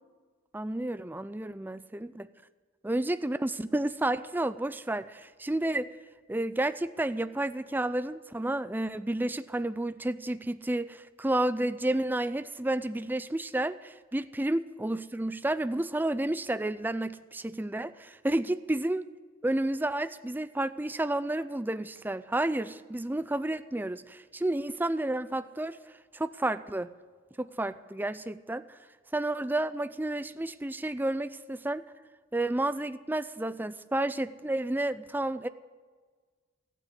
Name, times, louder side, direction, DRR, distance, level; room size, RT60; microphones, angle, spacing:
voice 1, 0.5-2.3 2.8-5.9 6.3-19.1 19.4-25.8 26.1-26.9 27.4-28.8 29.1-31.9 32.3-35.5, right 1 dB, 10° right, 12 dB, 0.4 m, -31 dB
14.0 x 9.2 x 9.6 m, 1.5 s
head